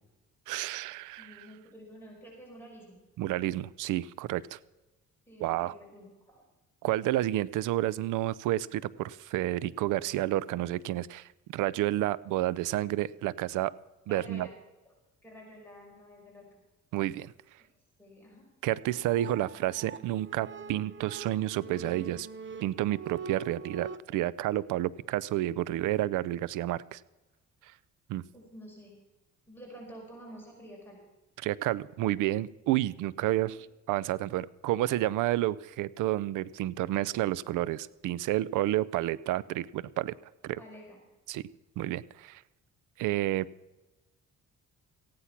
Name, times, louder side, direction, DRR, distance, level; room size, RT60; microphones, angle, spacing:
voice 1, 0.5-1.5 3.2-4.6 5.4-5.7 6.8-13.7 14.1-14.5 16.9-17.3 18.6-22.3 22.6-27.0 28.1-28.2 31.4-33.6 33.9-40.1 40.4-40.6 41.3-41.4 41.8-42.4 43.0-43.5, right 14 dB, 90° right, 21 dB, 0.5 m, -30 dB
voice 2, 1.2-3.0 5.3-6.4 14.1-14.6 15.2-16.5 17.6-17.7 18.0-18.5 28.3-28.9 29.5-31.0 40.6-41.0, equal, 5° left, -3 dB, 5.5 m, -49 dB
sound 1, 18.7-24.0, right 6 dB, 40° right, 1.0 m, -44 dB
15.5 x 9.9 x 5.8 m, 1.1 s
cardioid pair, 90°, 30 cm